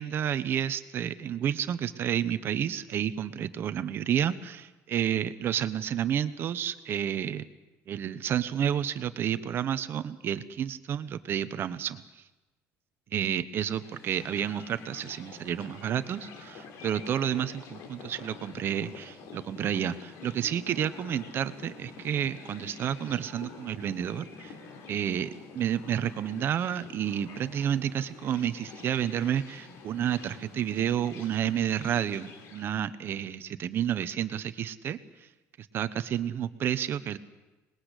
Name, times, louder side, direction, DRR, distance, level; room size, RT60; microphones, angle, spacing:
voice 1, 0.0-7.4 7.9-12.0 13.1-24.5 24.9-35.0 35.7-37.2, right 9 dB, 45° right, 12 dB, 1.1 m, -30 dB
sound 1, 13.7-32.7, left 5 dB, 65° left, 3.7 m, -47 dB
25.5 x 20.5 x 8.3 m, 1.1 s
cardioid pair, 140°, 6 cm